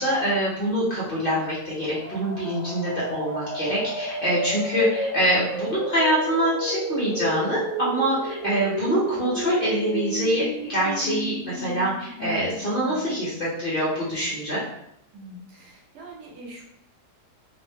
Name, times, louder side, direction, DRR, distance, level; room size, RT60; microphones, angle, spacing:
voice 1, 0.0-10.4 10.7-14.6, right 1 dB, 45° left, -7 dB, 0.7 m, -25 dB
sound 1, 1.8-13.5, equal, 25° right, 0.5 m, -32 dB
voice 2, 15.1-16.6, right 1 dB, 80° right, -1 dB, 1.2 m, -43 dB
2.7 x 2.0 x 3.3 m, 0.76 s
omnidirectional pair, 1.7 m